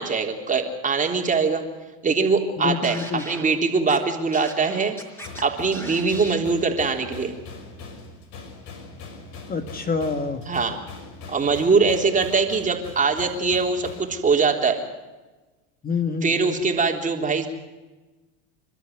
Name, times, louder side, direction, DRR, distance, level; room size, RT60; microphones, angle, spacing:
voice 1, 0.0-1.6 2.0-5.0 5.4-7.3 10.5-10.8 11.3-14.8 16.2-17.5, right 4 dB, 25° right, 3 dB, 3.6 m, -22 dB
voice 2, 2.6-3.2 9.5-10.4 15.8-16.3, left 5 dB, 25° left, 6 dB, 2.2 m, -26 dB
Scratching (performance technique), 2.8-3.4 3.9-4.0 4.3-5.4 5.7-6.4, equal, 5° left, 4.9 m, -37 dB
sound 1, 5.2-14.1, left 3 dB, 55° left, 5.7 m, -41 dB
28.5 x 13.0 x 9.5 m, 1.2 s
supercardioid pair, 100°, 34 cm